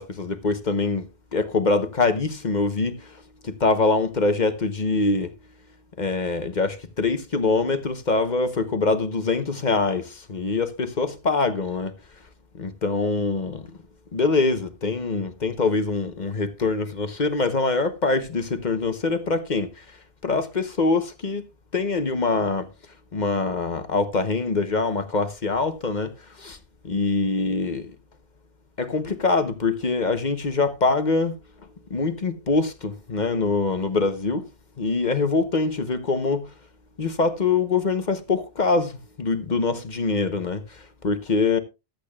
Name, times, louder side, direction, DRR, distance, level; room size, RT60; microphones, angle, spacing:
voice 1, 0.0-5.3 6.0-11.9 12.6-13.7 14.1-20.0 20.2-21.4 21.7-22.7 23.1-26.6 26.8-27.9 28.8-31.3 31.9-34.5 34.8-36.5 37.0-41.6, left 3 dB, 45° left, 1.0 m, -24 dB
15.0 x 12.0 x 2.3 m
omnidirectional pair, 1.1 m